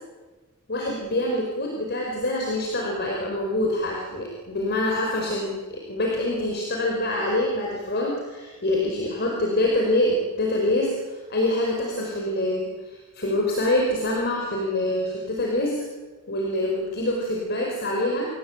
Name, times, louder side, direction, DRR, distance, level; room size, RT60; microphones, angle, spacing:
voice 1, 0.7-15.8 16.3-18.3, left 1 dB, 50° left, -1 dB, 5.0 m, -25 dB
28.0 x 17.5 x 9.2 m, 1.3 s
head